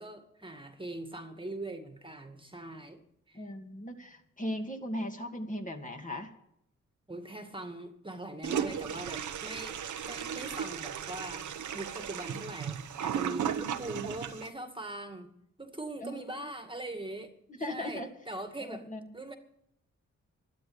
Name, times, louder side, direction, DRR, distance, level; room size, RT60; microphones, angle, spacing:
voice 1, 0.0-3.0 3.3-3.5 7.1-15.3 15.6-18.9 19.1-19.4, right 2 dB, 15° right, 2.1 m, -42 dB
voice 2, 3.3-6.3 16.0-16.4 17.5-18.1 18.7-19.0, left 1 dB, 25° left, 2.4 m, -38 dB
Toilet flush, 8.4-14.5, right 8 dB, 70° right, 1.1 m, -35 dB
12.5 x 12.0 x 8.1 m
cardioid pair, 60°, 31 cm